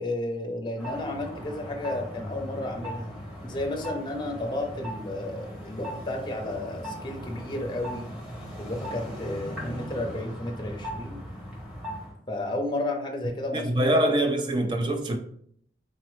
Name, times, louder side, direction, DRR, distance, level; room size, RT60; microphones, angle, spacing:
voice 1, 0.0-8.1 8.6-11.2 12.3-13.7, left 1 dB, 25° left, 0.6 m, -32 dB
sound 1, 0.8-12.1, equal, 5° right, 1.1 m, -38 dB
voice 2, 13.5-15.2, right 1 dB, 25° right, 0.4 m, -24 dB
3.9 x 3.0 x 3.1 m
head